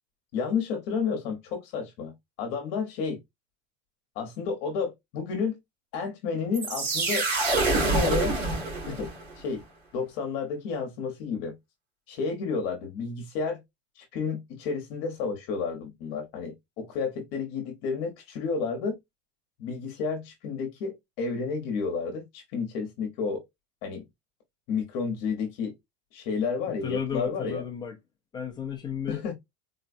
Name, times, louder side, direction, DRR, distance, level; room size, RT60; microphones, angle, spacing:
voice 1, 0.3-2.1 2.4-3.2 4.1-5.6 5.9-7.3 7.7-8.4 8.9-9.6 9.9-11.5 12.1-13.6 14.0-19.0 19.6-23.4 23.8-24.0 24.7-25.7 26.1-27.6 29.1-29.3, left 5 dB, 45° left, 1.0 m, -31 dB
sound 1, 6.5-9.3, right 3 dB, 65° right, 2.1 m, -26 dB
voice 2, 26.8-27.9 28.3-29.2, left 8 dB, 10° left, 0.4 m, -33 dB
4.1 x 2.2 x 2.4 m
cardioid pair, 180°, 39 cm